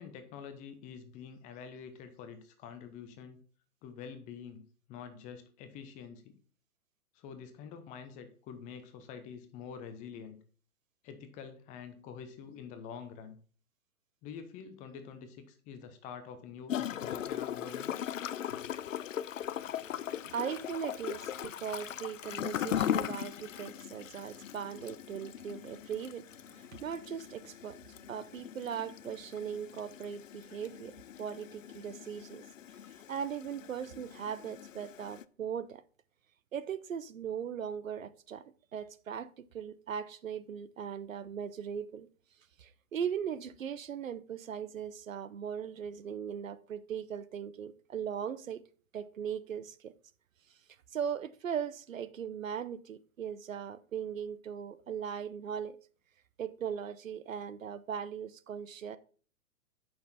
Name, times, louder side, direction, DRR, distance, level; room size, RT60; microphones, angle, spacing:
voice 1, 0.0-3.4 3.8-4.6 4.9-6.4 7.1-10.4 11.0-13.4 14.2-18.0, left 7 dB, 15° left, 0.7 m, -47 dB
Gurgling / Toilet flush, 16.7-35.2, left 10 dB, 60° left, 0.6 m, -39 dB
voice 2, 20.3-27.8 28.1-32.4 33.1-35.8 36.5-38.4 38.7-42.1 42.6-48.6 48.9-49.9 50.9-55.8 56.4-59.0, right 8 dB, 65° right, 0.8 m, -39 dB
8.4 x 6.0 x 4.2 m
figure-of-eight pair, 120°, 43 cm